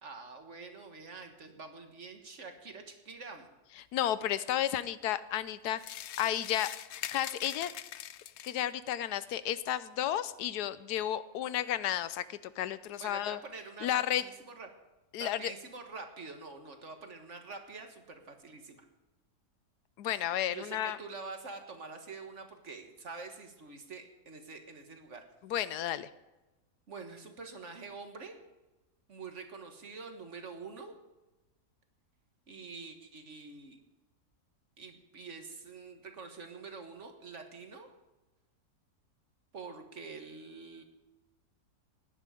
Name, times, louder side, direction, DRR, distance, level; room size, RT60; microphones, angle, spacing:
voice 1, 0.0-3.5 13.0-14.7 15.2-18.9 20.5-25.2 25.6-25.9 26.9-28.4 29.1-31.0 32.5-33.8 34.8-37.9 39.5-40.8, right 4 dB, 50° right, 5 dB, 1.8 m, -46 dB
voice 2, 3.9-5.8 6.2-6.7 7.1-7.7 8.4-13.4 13.8-14.2 15.1-15.5 20.0-21.0 25.4-26.1, left 11 dB, 90° left, 15 dB, 1.2 m, -32 dB
sound 1, 5.8-8.7, left 11 dB, 70° left, 0.6 m, -43 dB
17.5 x 10.0 x 5.1 m, 1.1 s
omnidirectional pair, 1.7 m